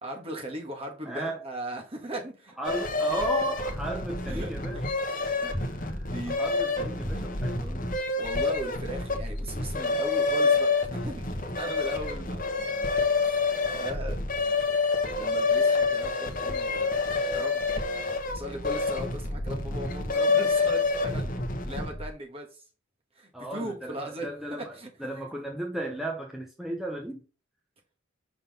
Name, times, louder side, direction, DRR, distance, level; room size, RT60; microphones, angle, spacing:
voice 1, 0.0-2.6 4.2-5.0 6.0-6.4 8.1-12.4 13.2-14.2 15.2-17.0 17.3-17.6 18.3-22.6 23.1-24.3 24.6-24.9, right 1 dB, 30° right, 1.5 m, -38 dB
voice 2, 1.1-1.4 2.6-4.8 5.4-7.9 9.7-9.8 12.6-12.9 13.6-13.9 23.3-27.2, right 1 dB, ahead, 0.7 m, -35 dB
sound 1, 2.6-22.1, left 3 dB, 45° left, 1.0 m, -28 dB
5.6 x 3.8 x 5.3 m
head